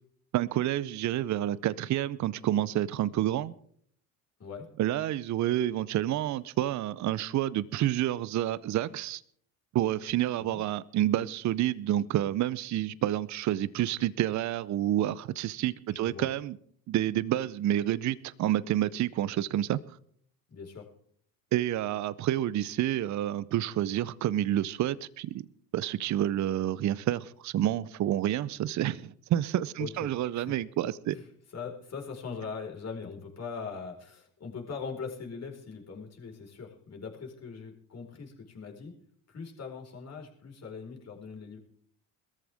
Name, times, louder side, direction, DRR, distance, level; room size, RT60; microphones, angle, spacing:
voice 1, 0.3-3.5 4.8-9.2 9.7-16.6 16.9-19.8 21.5-25.5 25.7-31.2, right 13 dB, 40° right, 0.7 m, -29 dB
voice 2, 15.9-16.3 20.5-20.9 29.8-30.5 31.1-31.3 31.5-38.9 39.3-41.6, left 5 dB, 35° left, 4.8 m, -41 dB
21.0 x 14.0 x 3.6 m
hypercardioid pair, 75°, 43 cm